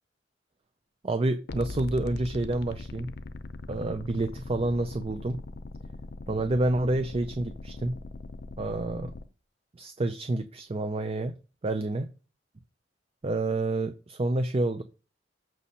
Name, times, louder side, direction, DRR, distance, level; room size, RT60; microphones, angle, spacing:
voice 1, 1.0-3.1 3.7-5.4 6.3-8.0 8.6-9.1 9.8-11.3 11.6-12.1 13.2-14.8, right 2 dB, 30° right, 9 dB, 0.5 m, -28 dB
sound 1, 1.5-9.2, left 2 dB, 60° left, 0.6 m, -40 dB
6.8 x 6.2 x 4.3 m, 0.34 s
head